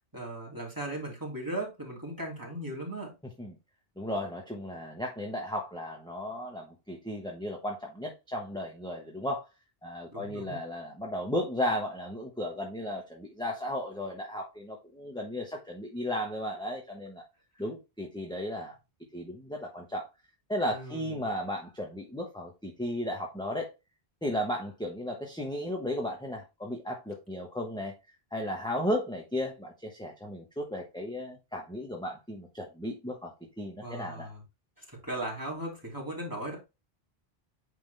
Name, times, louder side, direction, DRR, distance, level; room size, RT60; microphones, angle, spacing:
voice 1, 0.1-3.1 10.1-10.6 17.6-17.7 20.7-21.3 33.8-34.4 34.8-36.6, right 1 dB, 20° right, 2.9 m, -37 dB
voice 2, 4.0-9.5 9.8-17.2 17.6-18.7 19.1-20.0 20.5-23.7 24.2-27.9 28.3-33.3 33.6-34.3, left 1 dB, 5° left, 1.1 m, -35 dB
9.0 x 3.7 x 3.4 m
omnidirectional pair, 1.1 m